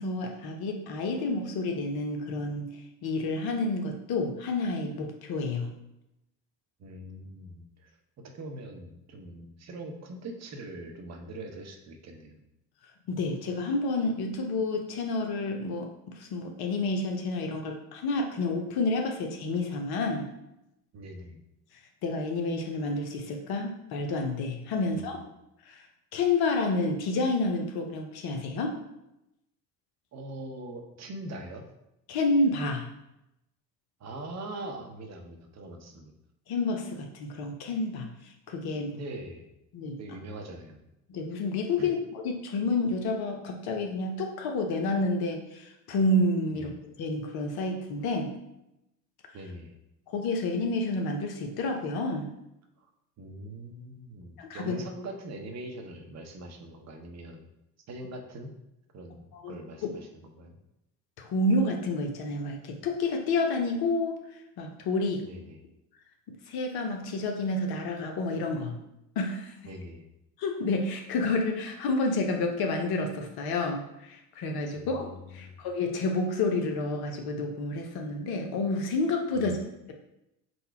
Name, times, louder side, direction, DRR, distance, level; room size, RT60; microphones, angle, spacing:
voice 1, 0.0-2.7 3.0-5.7 13.1-15.9 16.1-20.3 22.0-25.2 25.7-25.8 26.1-28.8 32.1-32.9 36.5-38.1 38.5-39.0 39.7-40.0 41.1-42.0 42.2-46.7 47.0-48.3 50.1-52.3 54.4-54.7 59.3-59.6 61.2-64.2 64.6-65.2 66.5-68.8 69.2-69.5 70.4-79.6, left 2 dB, 50° left, 3 dB, 0.9 m, -29 dB
voice 2, 6.8-7.9 8.2-12.4 20.9-21.4 24.9-25.1 30.1-31.6 34.0-36.1 38.9-39.5 40.0-40.8 41.8-41.9 46.5-46.7 49.3-49.8 52.8-52.9 53.2-57.5 57.9-58.5 58.9-60.6 65.2-65.6 69.6-70.0 74.7-75.6 79.3-79.6, right 1 dB, 35° right, 3 dB, 0.8 m, -42 dB
3.9 x 2.3 x 4.4 m, 0.88 s
hypercardioid pair, 65°, 49 cm